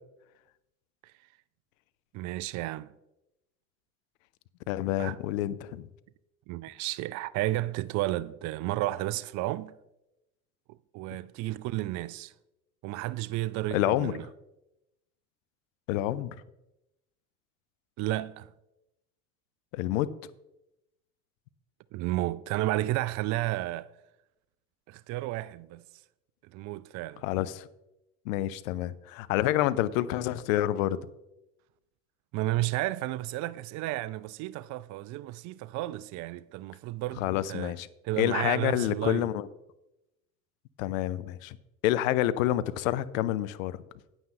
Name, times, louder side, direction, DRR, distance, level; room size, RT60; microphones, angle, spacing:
voice 1, 2.1-2.9 5.0-5.2 6.5-9.7 10.9-12.3 12.8-14.2 18.0-18.5 21.9-23.9 24.9-25.8 26.5-27.2 32.3-37.8 38.0-39.3, right 16 dB, 45° right, 0.4 m, -32 dB
voice 2, 4.7-5.9 13.7-14.1 15.9-16.3 19.7-20.1 27.2-27.7 28.3-31.0 37.2-37.9 38.2-39.5 40.8-41.6 41.8-43.8, left 14 dB, 75° left, 0.6 m, -28 dB
9.0 x 8.9 x 3.8 m
hypercardioid pair, 75°, 40 cm